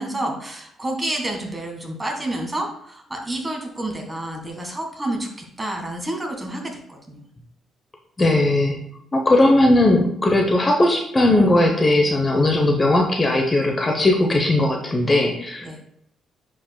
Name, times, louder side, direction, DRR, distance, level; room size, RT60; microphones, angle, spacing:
voice 1, 0.0-5.3 5.6-7.2 15.6-15.8, right 1 dB, 20° right, 1 dB, 1.8 m, -29 dB
voice 2, 8.2-8.8 9.1-15.8, left 1 dB, 25° left, 2 dB, 0.9 m, -18 dB
10.0 x 5.1 x 2.3 m, 0.69 s
cardioid pair, 90°, 0 cm